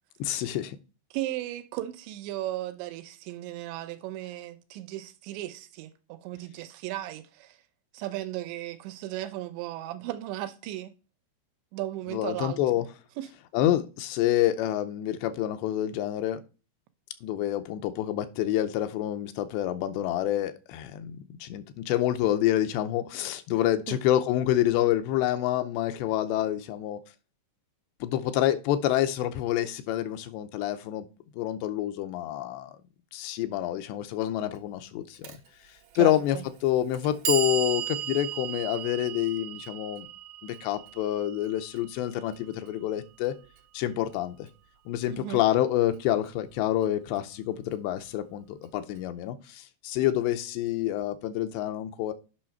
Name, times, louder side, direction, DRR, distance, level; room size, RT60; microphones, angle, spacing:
voice 1, 0.2-0.8 12.1-12.9 13.5-16.4 17.2-27.0 28.0-31.1 31.4-32.8 33.1-35.4 36.0-36.4 36.6-40.1 40.4-43.3 43.7-44.5 44.9-52.1, left 12 dB, 85° left, 2.7 m, -27 dB
voice 2, 1.1-7.6 7.9-10.9 11.7-12.6 13.2-13.3 23.9-24.0 35.9-36.4 45.1-45.4, right 14 dB, 85° right, 3.0 m, -36 dB
Clock, 35.2-35.4 36.3-36.4 36.9-43.0, right 9 dB, 70° right, 2.2 m, -35 dB
8.6 x 5.8 x 4.5 m
omnidirectional pair, 5.2 m